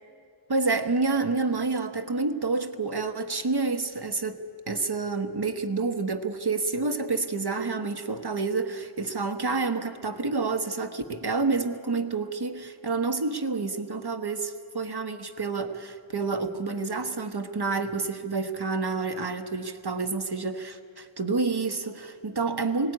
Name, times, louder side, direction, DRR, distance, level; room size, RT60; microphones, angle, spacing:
voice 1, 0.5-4.4 4.7-22.9, right 3 dB, 50° right, 8 dB, 1.3 m, -28 dB
18.5 x 17.5 x 9.6 m, 2.2 s
wide cardioid pair, 50°, 49 cm